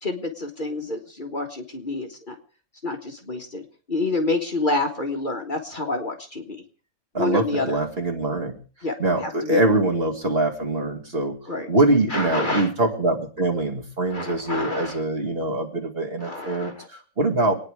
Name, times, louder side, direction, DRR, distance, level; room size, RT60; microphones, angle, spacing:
voice 1, 0.0-2.4 2.8-6.6 7.2-7.8 8.8-8.9 9.2-9.6 11.5-11.7 12.1-12.7 14.1-15.0 16.2-16.9, left 2 dB, 35° left, 2 dB, 1.9 m, -28 dB
voice 2, 7.1-8.6 9.0-11.4 11.7-17.5, right 2 dB, 45° right, 2 dB, 2.4 m, -23 dB
24.5 x 9.7 x 4.9 m, 0.39 s
omnidirectional pair, 1.5 m